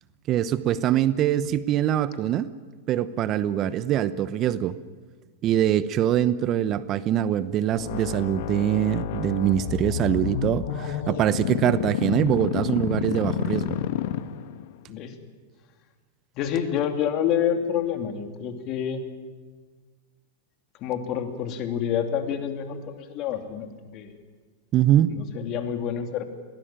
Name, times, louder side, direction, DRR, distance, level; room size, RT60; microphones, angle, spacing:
voice 1, 0.3-2.5 2.9-4.8 5.4-13.8 24.7-25.2, right 11 dB, 40° right, 16 dB, 0.9 m, -23 dB
sound 1, 7.8-14.7, left 11 dB, 60° left, 1.2 m, -29 dB
voice 2, 16.3-19.0 20.8-24.1 25.2-26.2, left 8 dB, 45° left, 6 dB, 2.8 m, -28 dB
22.0 x 18.0 x 9.0 m, 1.5 s
hypercardioid pair, 105°, 0 cm